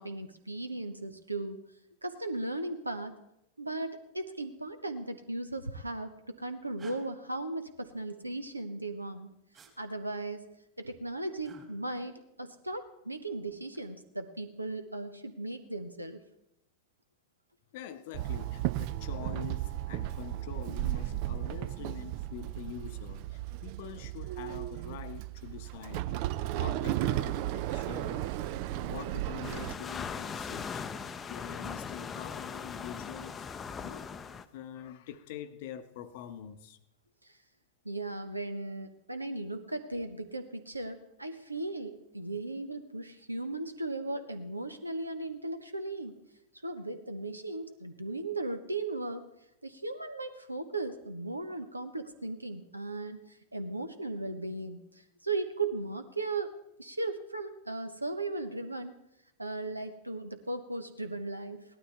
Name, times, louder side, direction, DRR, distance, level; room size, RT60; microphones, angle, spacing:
voice 1, 0.0-1.6 2.0-3.2 3.6-9.3 9.8-10.5 10.8-16.2 37.2-37.4 37.8-46.2 46.6-49.3 49.6-59.0 59.4-61.6, right 2 dB, 85° right, 9 dB, 1.0 m, -37 dB
sound 1, 6.8-7.0 9.5-9.7 11.4-11.7 13.5-13.9, right 6 dB, 25° right, 2.6 m, -51 dB
voice 2, 17.7-26.0 26.6-28.3 28.7-33.5 33.8-34.1 34.5-36.8, left 10 dB, 50° left, 11 dB, 0.8 m, -45 dB
Walk footsteps / Chatter / Hiss, 18.1-29.7, right 14 dB, 45° right, 0.5 m, -34 dB
sound 2, 29.4-34.4, left 6 dB, 20° left, 0.6 m, -39 dB
17.5 x 12.0 x 3.4 m, 0.84 s
figure-of-eight pair, 90°, 0 cm